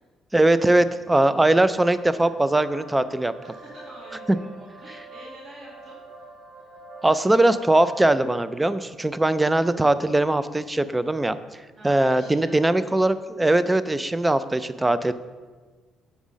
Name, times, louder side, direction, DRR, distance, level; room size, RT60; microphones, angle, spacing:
voice 1, 0.3-3.3 7.0-11.4 11.8-15.1, right 2 dB, 10° right, 14 dB, 0.3 m, -21 dB
sound 1, 1.8-8.4, right 2 dB, 70° right, 1.5 m, -45 dB
voice 2, 3.4-6.0 11.7-12.9, right 1 dB, 55° right, -5 dB, 2.1 m, -46 dB
7.1 x 5.0 x 5.6 m, 1.4 s
cardioid pair, 105°, 0 cm